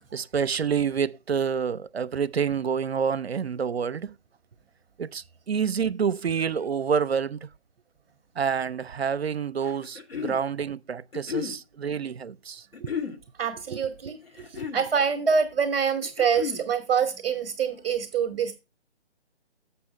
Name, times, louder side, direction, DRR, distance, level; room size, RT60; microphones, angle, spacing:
voice 1, 0.1-4.1 5.0-7.5 8.4-12.9 13.7-13.8 14.4-14.5, right 7 dB, 65° right, 0.6 m, -28 dB
sound 1, 9.7-10.4 11.1-11.6 12.7-13.2 14.2-14.9 16.0-16.7, left 7 dB, 60° left, 1.5 m, -33 dB
voice 2, 13.4-14.2 14.5-18.6, right 6 dB, 10° right, 0.7 m, -25 dB
6.9 x 6.3 x 4.9 m
figure-of-eight pair, 145°, 34 cm